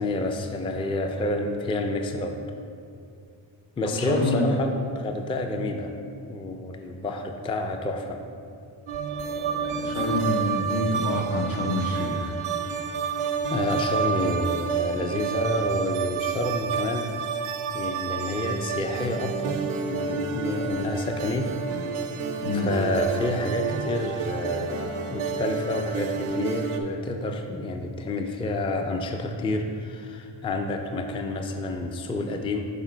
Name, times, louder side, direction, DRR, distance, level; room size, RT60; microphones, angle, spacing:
voice 1, 0.0-2.4 3.8-6.0 6.3-8.2 10.0-10.1 13.5-17.1 17.7-19.6 19.9-21.5 22.5-32.7, left 2 dB, 15° left, 4 dB, 0.3 m, -29 dB
voice 2, 4.0-4.5 9.6-12.3 22.4-22.7, left 2 dB, 70° left, 0 dB, 1.1 m, -27 dB
sound 1, 8.9-26.8, right 6 dB, 85° right, 0.6 m, -29 dB
5.5 x 3.8 x 4.9 m, 2.4 s
cardioid pair, 70°, 48 cm